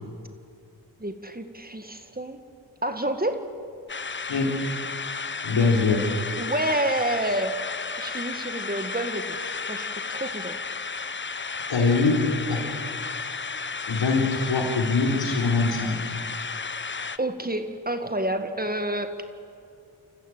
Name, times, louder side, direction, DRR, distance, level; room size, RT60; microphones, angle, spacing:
voice 1, 1.0-2.4 2.8-3.4 6.4-7.5 8.0-10.6 17.2-19.2, right 1 dB, 20° right, 8 dB, 1.9 m, -29 dB
sound 1, 3.9-17.2, left 4 dB, 25° left, 0.8 m, -33 dB
voice 2, 5.4-6.0 11.7-12.2 12.5-12.6 13.9-16.1, left 3 dB, 80° left, 0 dB, 4.1 m, -23 dB
28.0 x 14.5 x 8.0 m, 2.4 s
cardioid pair, 45°, 43 cm